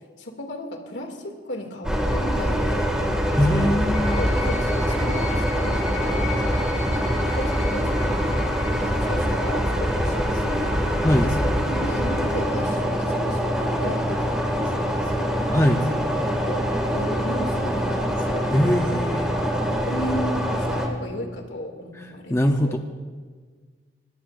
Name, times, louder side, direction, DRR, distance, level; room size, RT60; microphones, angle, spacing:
voice 1, 0.2-2.9 3.5-3.8 4.0-6.8 7.2-8.1 8.4-18.5 18.9-19.1 19.4-22.8, left 1 dB, 75° left, 2 dB, 2.5 m, -35 dB
sound 1, 1.8-20.9, equal, 5° right, 2.1 m, -24 dB
voice 2, 3.4-4.2 11.0-11.3 15.5-15.8 18.5-19.3 22.3-22.8, equal, 15° left, 4 dB, 0.7 m, -21 dB
sound 2, 3.9-15.9 16.4-17.3, left 5 dB, 45° left, 4.8 m, -40 dB
24.5 x 20.5 x 2.6 m, 1.5 s
head